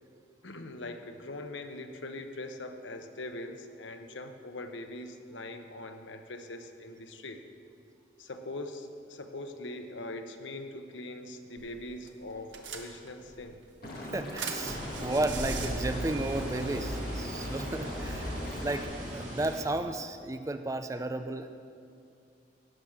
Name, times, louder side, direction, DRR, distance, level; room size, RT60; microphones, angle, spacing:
voice 1, 0.4-7.4 8.2-13.6, left 2 dB, 85° left, 6 dB, 0.9 m, -42 dB
sound 1, 11.6-11.8 12.1-12.2 12.5-13.3 13.8-17.0, right 2 dB, 90° right, 1.3 m, -37 dB
Liquid, 13.8-18.8, left 1 dB, 50° left, 1.7 m, -41 dB
voice 2, 14.1-21.5, right 2 dB, 15° right, 9 dB, 0.4 m, -33 dB
sound 2, 14.6-19.6, equal, 40° right, 2.7 m, -40 dB
17.5 x 6.6 x 5.9 m, 2.5 s
head